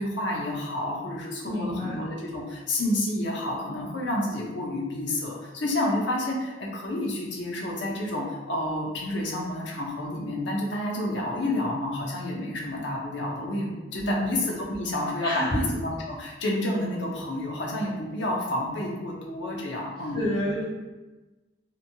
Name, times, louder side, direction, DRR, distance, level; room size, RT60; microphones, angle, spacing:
voice 1, 0.0-20.2, left 1 dB, 65° left, -3 dB, 0.6 m, -30 dB
voice 2, 1.4-2.0 13.9-14.3 15.2-15.6 20.1-20.6, equal, 25° left, -10 dB, 1.1 m, -28 dB
2.9 x 2.2 x 2.7 m, 1.2 s
head